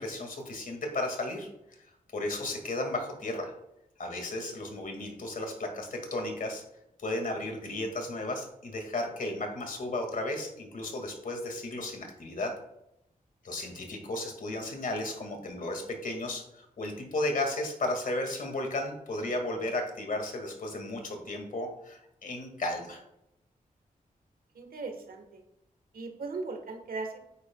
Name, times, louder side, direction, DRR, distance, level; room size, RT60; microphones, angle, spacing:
voice 1, 0.0-1.5 2.1-3.5 4.0-6.6 7.0-12.5 13.4-23.0, left 2 dB, 65° left, 3 dB, 2.0 m, -34 dB
voice 2, 24.5-25.4 25.9-27.2, right 3 dB, 90° right, 5 dB, 1.4 m, -38 dB
9.6 x 9.2 x 2.3 m, 0.83 s
wide cardioid pair, 85°, 15 cm